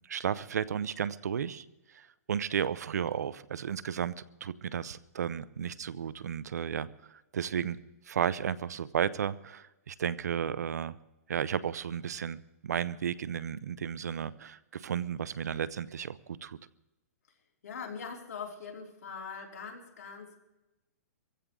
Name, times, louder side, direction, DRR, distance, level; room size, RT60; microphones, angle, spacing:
voice 1, 0.1-7.8 8.1-10.9 11.3-16.6, right 8 dB, 85° right, 18 dB, 0.7 m, -33 dB
voice 2, 17.6-20.4, left 5 dB, 75° left, 0 dB, 3.5 m, -42 dB
24.0 x 15.5 x 3.8 m, 1.0 s
hypercardioid pair, 155°, 9 cm